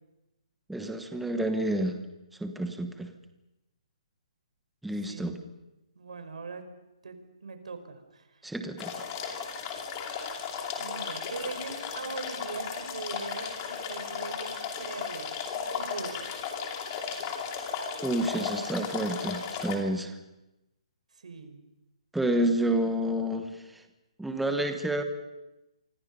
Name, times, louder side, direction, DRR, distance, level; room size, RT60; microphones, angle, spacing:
voice 1, 0.7-2.0 2.4-3.1 4.8-5.4 8.4-8.9 18.0-20.1 22.1-23.8 24.2-25.0, right 1 dB, ahead, 5 dB, 1.1 m, -29 dB
voice 2, 5.1-5.4 5.9-6.6 7.0-7.2 7.4-8.4 10.8-15.4 15.7-16.6 21.1-21.6, right 4 dB, 75° right, 8 dB, 5.0 m, -41 dB
sound 1, 8.8-19.8, left 6 dB, 20° left, 2.7 m, -35 dB
26.5 x 25.0 x 5.5 m, 0.95 s
hypercardioid pair, 175°, 4 cm